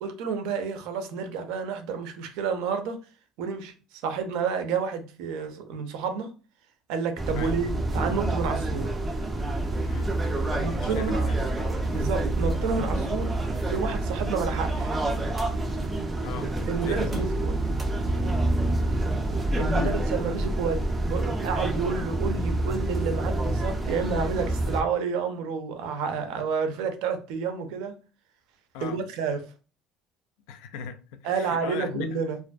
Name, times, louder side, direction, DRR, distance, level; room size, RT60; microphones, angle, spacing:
voice 1, 0.0-3.0 3.4-3.7 4.0-6.3 6.9-8.9 10.6-11.3 11.9-13.4 13.7-15.0 16.7-17.6 19.6-28.0 28.8-29.5 31.2-32.4, right 5 dB, 70° right, 0.5 m, -30 dB
sound 1, 7.2-24.8, right 2 dB, 10° right, 0.3 m, -27 dB
voice 2, 9.8-10.2 10.5-11.4 16.2-16.6 16.8-17.2 19.7-20.0 28.7-29.0 30.5-32.1, left 9 dB, 85° left, 0.3 m, -38 dB
2.5 x 2.4 x 2.2 m
cardioid pair, 180°, 0 cm